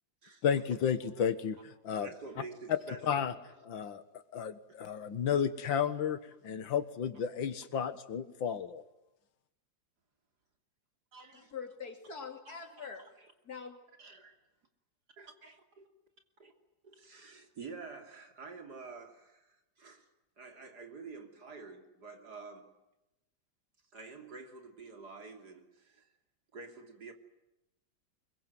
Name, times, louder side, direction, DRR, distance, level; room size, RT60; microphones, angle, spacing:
voice 1, 0.4-2.1 3.1-3.3 3.7-4.0 4.3-6.2 6.4-8.8, left 8 dB, 90° left, 2.2 m, -32 dB
voice 2, 2.0-3.3 3.8-3.9 5.8-5.9 7.1-7.3 11.1-11.5 12.5-13.3 14.0-14.4 15.2-15.9 16.4-16.5 16.8-20.1 20.4-22.8 23.9-26.1 26.5-27.1, right 4 dB, 55° right, 3.5 m, -49 dB
voice 3, 11.3-13.1 13.4-13.8, left 6 dB, 55° left, 3.2 m, -44 dB
24.5 x 23.0 x 9.5 m
omnidirectional pair, 2.0 m